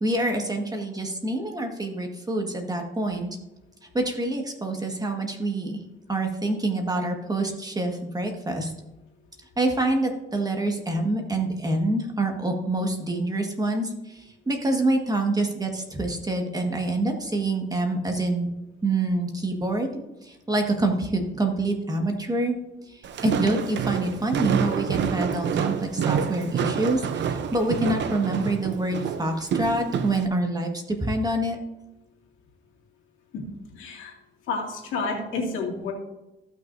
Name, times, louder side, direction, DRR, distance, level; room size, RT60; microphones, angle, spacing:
voice 1, 0.0-3.3 3.9-5.8 6.1-8.7 9.6-18.5 18.8-19.9 20.2-22.6 22.9-31.6, right 2 dB, 20° right, 3 dB, 1.6 m, -26 dB
Walk footsteps, 23.0-30.3, right 7 dB, 65° right, 0.8 m, -28 dB
voice 2, 33.7-34.1 34.5-35.9, left 4 dB, 85° left, -1 dB, 2.3 m, -30 dB
15.5 x 6.2 x 2.7 m, 0.99 s
cardioid pair, 90°, 20 cm